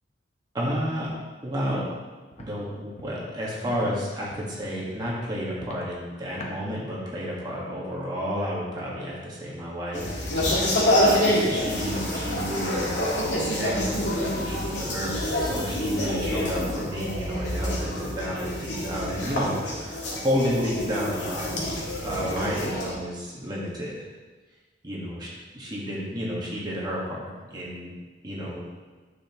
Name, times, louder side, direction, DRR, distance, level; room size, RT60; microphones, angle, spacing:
voice 1, 0.5-1.1 1.4-1.8 2.4-21.6 22.0-24.0 24.8-25.3 25.5-27.9 28.2-28.6, equal, 25° right, -6 dB, 1.8 m, -31 dB
Walk footsteps, 1.7-1.8 2.3-2.5 3.0-3.1 3.7-3.8 4.3-4.5 5.0-5.1 5.6-5.8 6.4-6.5, left 1 dB, 40° left, 1.1 m, -42 dB
sound 1, 9.9-22.9, left 1 dB, 80° left, 2.0 m, -27 dB
9.2 x 7.0 x 3.1 m, 1.3 s
head